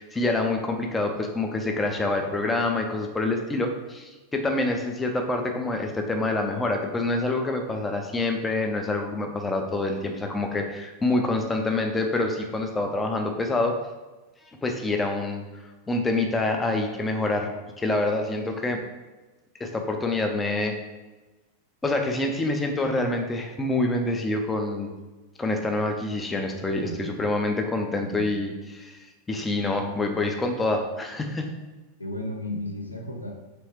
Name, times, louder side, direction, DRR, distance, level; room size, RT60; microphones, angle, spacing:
voice 1, 0.0-13.8 14.6-15.4 15.9-17.5 17.8-18.8 19.6-20.8 21.8-24.9 25.4-31.5, left 2 dB, 15° left, 3 dB, 0.4 m, -26 dB
voice 2, 32.0-33.3, left 1 dB, 90° left, 1 dB, 0.5 m, -34 dB
3.1 x 3.0 x 3.0 m, 1.2 s
figure-of-eight pair, 90°, 0 cm